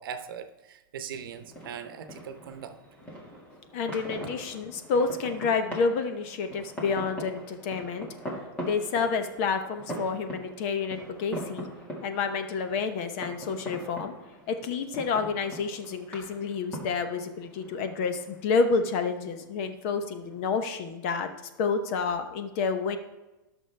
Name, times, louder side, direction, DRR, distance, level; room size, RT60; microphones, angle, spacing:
voice 1, 0.0-2.8, right 7 dB, 70° right, 9 dB, 1.0 m, -40 dB
sound 1, 1.1-20.4, equal, 10° left, 1.9 m, -42 dB
voice 2, 3.7-8.1 8.6-11.6 12.0-14.1 14.5-21.3 21.6-23.0, left 5 dB, 35° left, 8 dB, 0.9 m, -29 dB
16.5 x 6.3 x 3.4 m, 1.0 s
supercardioid pair, 165°, 12 cm